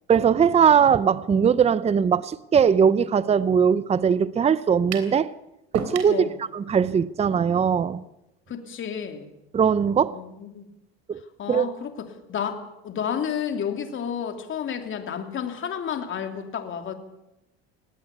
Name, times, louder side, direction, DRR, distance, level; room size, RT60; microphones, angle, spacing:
voice 1, 0.1-5.3 5.7-6.3 6.5-8.0 9.5-10.2 11.1-11.2 11.5-11.7, right 7 dB, 20° right, 0.7 m, -20 dB
sound 1, 4.9-5.2 5.7-6.2, right 7 dB, 70° right, 3.5 m, -32 dB
voice 2, 8.5-9.3 10.1-10.6 11.4-16.9, left 8 dB, 40° left, 3.1 m, -31 dB
19.0 x 17.5 x 8.4 m
supercardioid pair, 100°, 30 cm